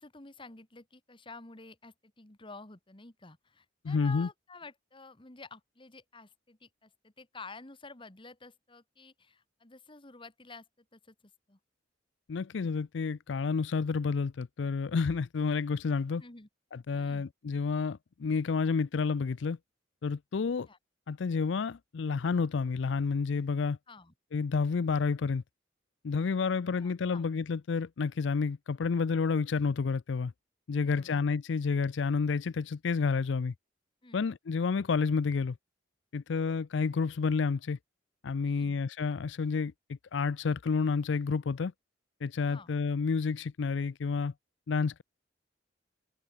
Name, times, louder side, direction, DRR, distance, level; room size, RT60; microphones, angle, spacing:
voice 1, 0.0-11.6 16.2-16.5 16.9-17.3 20.7-20.8 23.9-24.1 26.8-27.2 30.8-31.2 34.0-34.3 38.5-38.8 42.5-42.7, left 3 dB, 25° left, 1.7 m, -50 dB
voice 2, 3.8-4.3 12.3-16.2 16.7-19.6 20.0-20.7 21.1-23.8 24.3-25.4 26.0-30.3 30.7-33.5 34.1-35.6 36.1-37.8 38.2-39.7 40.1-41.7 42.2-44.3 44.7-45.0, left 5 dB, 70° left, 0.5 m, -30 dB
open air
head